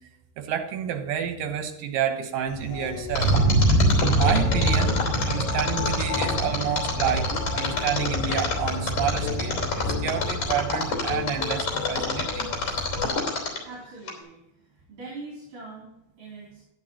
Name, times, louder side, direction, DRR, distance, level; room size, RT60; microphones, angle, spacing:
voice 1, 0.4-3.3 4.0-12.5, right 8 dB, 85° right, 6 dB, 3.0 m, -29 dB
Thunder, 2.5-13.1, right 1 dB, 25° right, 3.4 m, -26 dB
sound 1, 2.7-13.1, left 9 dB, 85° left, 2.5 m, -36 dB
Mechanisms, 3.2-13.7 14.1-14.2, left 4 dB, 50° left, 4.1 m, -28 dB
voice 2, 13.6-14.4 14.9-15.9 16.2-16.6, right 3 dB, 70° right, -4 dB, 4.7 m, -41 dB
11.5 x 11.0 x 2.9 m, 0.87 s
omnidirectional pair, 3.9 m